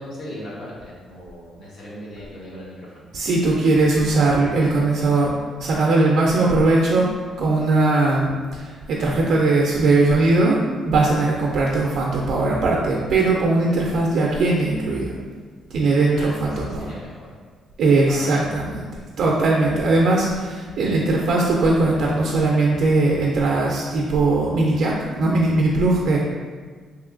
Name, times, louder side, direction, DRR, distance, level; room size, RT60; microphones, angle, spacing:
voice 1, 0.0-3.1 16.0-17.3 18.1-18.5, equal, 75° left, -7 dB, 1.1 m, -38 dB
voice 2, 3.1-5.3 5.6-7.1 7.4-10.6 10.8-15.1 15.7-16.9 17.8-18.9 19.2-26.2, right 2 dB, 75° right, -3 dB, 0.4 m, -19 dB
3.0 x 2.9 x 2.4 m, 1.5 s
cardioid pair, 90°, 0 cm